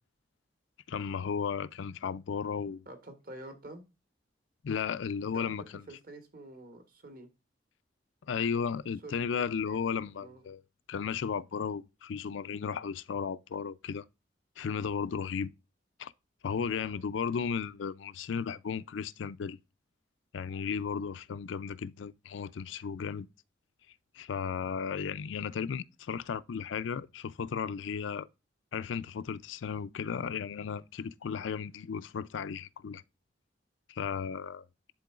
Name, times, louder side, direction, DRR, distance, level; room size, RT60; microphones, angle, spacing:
voice 1, 0.9-2.9 4.6-5.6 8.3-10.6 10.9-14.0 14.6-15.5 16.0-16.1 16.4-19.6 20.3-23.3 24.1-28.3 28.7-33.0 33.9-34.6, left 6 dB, 80° left, 0.4 m, -34 dB
voice 2, 2.8-3.8 5.3-7.3 9.0-9.8 10.2-10.5 16.7-17.0, right 1 dB, 50° right, 1.6 m, -48 dB
11.5 x 3.8 x 2.4 m
head